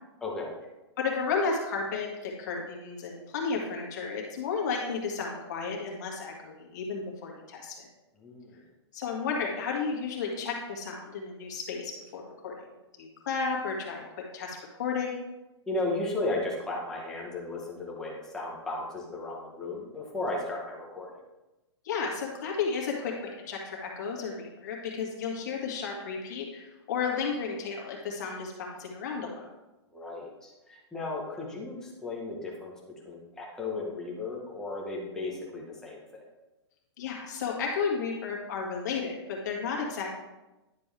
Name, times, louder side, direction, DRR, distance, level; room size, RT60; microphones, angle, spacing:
voice 1, 0.2-0.6 8.2-8.6 15.7-21.1 29.9-32.7 33.0-36.2, left 2 dB, 5° left, -3 dB, 1.0 m, -35 dB
voice 2, 1.0-7.9 8.9-12.5 13.0-15.2 21.8-29.5 37.0-40.2, left 5 dB, 40° left, -1 dB, 1.9 m, -33 dB
10.5 x 6.8 x 3.4 m, 1.0 s
hypercardioid pair, 180°, 15 cm